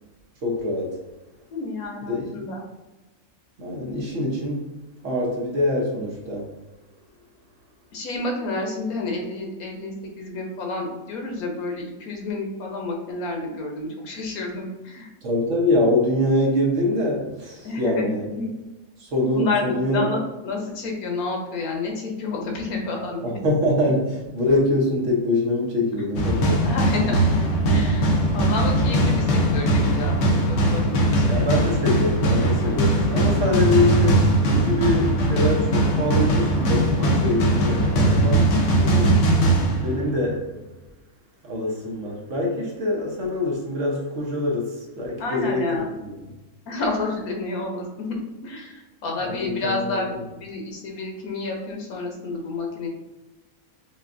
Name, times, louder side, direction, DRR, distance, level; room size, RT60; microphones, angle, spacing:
voice 1, 0.4-1.0 2.1-2.5 3.6-4.7 5.0-6.5 15.2-18.3 19.0-20.0 23.2-26.6 31.3-38.4 39.8-40.5 41.4-46.1 49.2-50.2, left 1 dB, 65° right, -1 dB, 1.1 m, -24 dB
voice 2, 1.5-2.6 7.9-15.1 17.6-18.5 19.3-23.4 25.9-26.0 26.6-27.4 27.6-30.2 30.5-31.5 38.8-39.2 45.2-45.9 46.7-48.2 48.4-52.9, left 3 dB, 85° left, 1 dB, 1.3 m, -30 dB
sound 1, 26.1-40.3, right 1 dB, 60° left, 1.0 m, -20 dB
5.7 x 2.2 x 2.5 m, 1.1 s
omnidirectional pair, 1.5 m